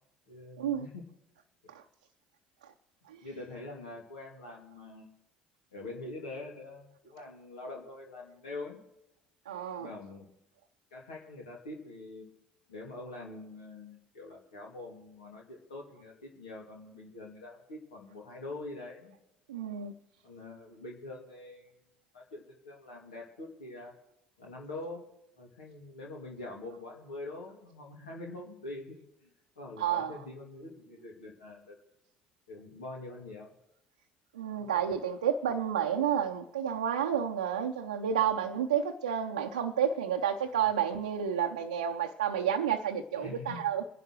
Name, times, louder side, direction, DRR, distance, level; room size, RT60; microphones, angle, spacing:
voice 1, 0.3-1.0 1.6-1.7 3.2-5.1 5.7-8.8 9.8-10.3 10.9-12.3 12.7-19.2 20.2-21.7 22.1-23.9 24.4-25.1 25.4-29.0 29.2-29.3 29.6-31.8 32.5-33.5 34.6-34.7 43.2-43.8, left 2 dB, 80° left, 2.5 m, -44 dB
voice 2, 9.5-9.9 19.5-19.9 29.8-30.1 34.3-43.8, right 8 dB, 80° right, 0.6 m, -30 dB
26.5 x 11.0 x 3.1 m
figure-of-eight pair, 60°, 4 cm